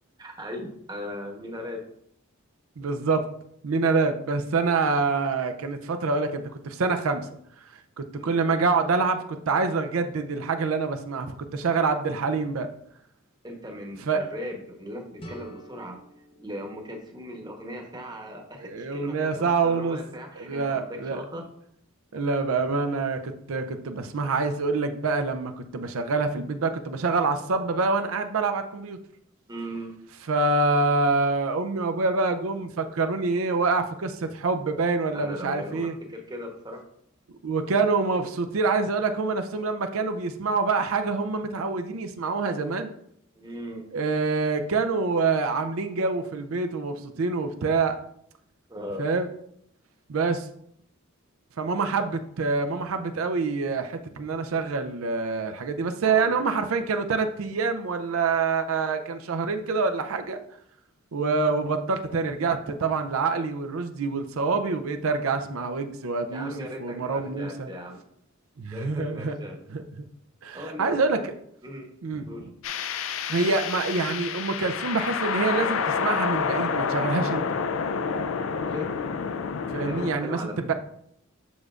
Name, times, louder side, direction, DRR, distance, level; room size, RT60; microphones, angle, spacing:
voice 1, 0.2-1.8 8.2-8.5 13.4-16.0 16.4-21.5 29.5-29.9 35.1-36.8 43.4-43.8 48.7-49.1 56.1-56.6 66.3-68.0 68.7-69.6 70.5-71.2 71.6-71.9 72.2-72.5 78.6-78.9 79.8-80.6, equal, 20° right, 2 dB, 1.0 m, -38 dB
voice 2, 2.8-3.3 3.6-7.3 7.7-12.7 14.1-14.2 18.6-20.0 20.4-21.2 22.1-29.0 30.3-35.9 37.4-42.9 43.9-48.0 49.0-49.3 50.1-50.5 51.6-60.4 61.1-66.5 66.8-67.7 68.6-69.4 69.7-69.8 70.4-71.3 72.0-72.3 73.3-77.5 79.7-80.7, right 4 dB, 90° right, 7 dB, 0.5 m, -26 dB
sound 1, 15.2-18.1, right 1 dB, 25° left, 0.7 m, -48 dB
sound 2, 72.6-80.1, left 6 dB, 70° left, 0.4 m, -28 dB
6.9 x 6.4 x 2.4 m, 0.71 s
head